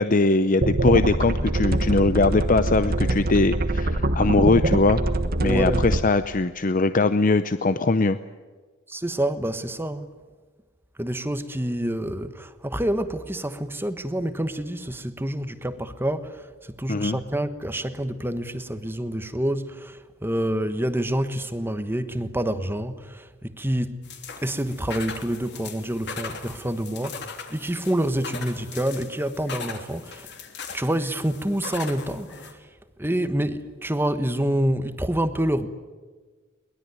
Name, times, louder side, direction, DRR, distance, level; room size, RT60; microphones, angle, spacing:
voice 1, 0.0-5.0 5.4-8.2 16.9-17.2, left 3 dB, 40° left, 0.7 m, -21 dB
sound 1, 0.6-6.0, right 2 dB, 50° right, 1.4 m, -24 dB
voice 2, 5.4-5.9 8.9-10.1 11.0-24.0 24.4-30.3 30.7-32.6 33.0-35.7, right 1 dB, 10° right, 1.3 m, -27 dB
sound 2, 24.0-32.5, left 5 dB, 55° left, 3.2 m, -39 dB
23.0 x 21.0 x 9.6 m
head